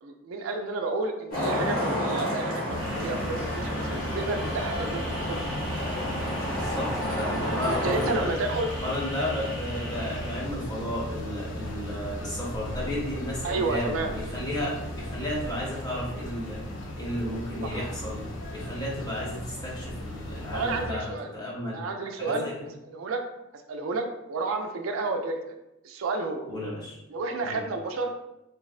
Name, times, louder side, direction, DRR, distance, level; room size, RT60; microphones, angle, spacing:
voice 1, 0.0-5.4 7.7-8.7 13.4-14.1 17.6-17.9 20.5-21.3 21.7-22.5 22.9-23.2 23.7-25.6 25.8-26.5 27.1-28.1, right 3 dB, 90° right, 5 dB, 0.4 m, -31 dB
Traffic noise roadway noise, 1.3-8.1, equal, 45° left, 0.9 m, -31 dB
sound 1, 2.7-20.9, equal, 65° left, 0.5 m, -36 dB
sound 2, 2.8-10.4, equal, 25° right, 0.6 m, -38 dB
voice 2, 6.4-8.3 8.8-16.6 17.0-21.8 22.2-22.7 26.5-27.0 27.4-27.6, left 1 dB, 20° left, -6 dB, 0.7 m, -33 dB
3.3 x 2.1 x 2.3 m, 0.89 s
head